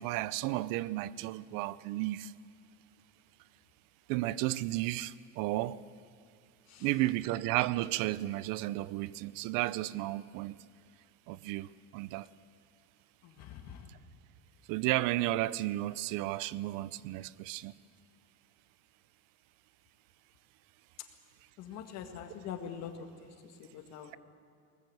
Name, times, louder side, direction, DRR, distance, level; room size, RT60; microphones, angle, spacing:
voice 1, 0.0-2.3 4.1-5.8 6.8-10.6 11.3-12.3 14.7-17.7, right 17 dB, 90° right, 0.7 m, -33 dB
voice 2, 13.2-14.0 21.0-21.1 21.6-24.2, left 8 dB, 55° left, 2.0 m, -44 dB
21.5 x 19.0 x 8.0 m
cardioid pair, 175°, 32 cm